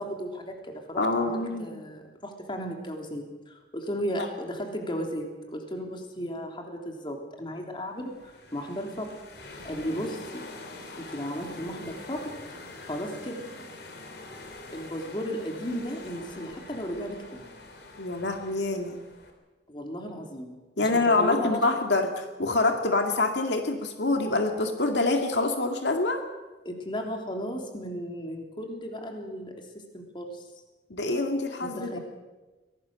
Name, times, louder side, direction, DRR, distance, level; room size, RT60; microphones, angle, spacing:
voice 1, 0.0-8.2 8.5-9.1 9.6-10.4 11.0-12.3 12.8-13.5 14.7-17.4 19.7-21.8 26.6-29.5 29.9-30.4 31.6-32.0, equal, 30° left, 2 dB, 3.3 m, -35 dB
voice 2, 1.0-1.8 18.0-19.0 20.8-22.1 22.4-26.2 30.9-32.0, left 2 dB, 80° left, 4 dB, 2.1 m, -26 dB
sound 1, 8.0-19.3, left 2 dB, 65° left, 3.6 m, -45 dB
24.0 x 18.0 x 6.6 m, 1.2 s
head